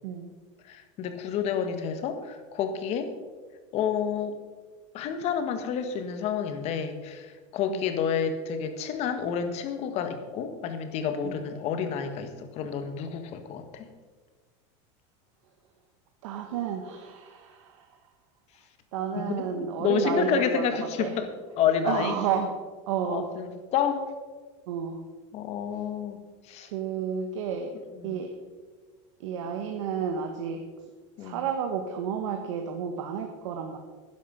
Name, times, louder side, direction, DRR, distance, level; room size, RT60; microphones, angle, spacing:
voice 1, 0.7-3.1 3.7-4.4 4.9-13.9 19.2-21.3 21.6-22.2 23.0-24.1 25.3-26.2 26.5-26.7 28.0-28.1 31.2-31.4, left 7 dB, 45° left, 8 dB, 1.5 m, -29 dB
voice 2, 16.2-17.9 18.9-20.6 21.0-21.1 21.8-22.5 22.9-23.3 24.7-25.0 26.6-27.7 28.0-28.3 29.2-30.6 31.2-33.8, right 7 dB, 85° right, 4 dB, 1.4 m, -31 dB
12.0 x 10.5 x 5.2 m, 1.4 s
supercardioid pair, 150°, 16 cm